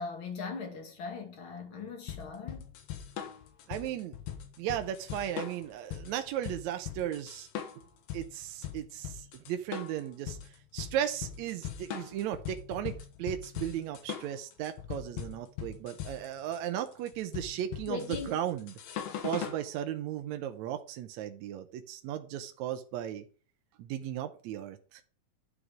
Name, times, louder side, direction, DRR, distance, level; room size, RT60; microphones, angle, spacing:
voice 1, 0.0-2.7 17.9-18.4, left 4 dB, 40° left, 2.4 m, -39 dB
sound 1, 2.1-19.6, left 9 dB, 85° left, 3.1 m, -40 dB
voice 2, 3.7-4.2 4.6-7.5 8.1-10.4 10.7-18.7 19.2-23.3 23.8-25.0, right 11 dB, 75° right, 1.7 m, -36 dB
11.0 x 5.1 x 4.9 m
omnidirectional pair, 4.0 m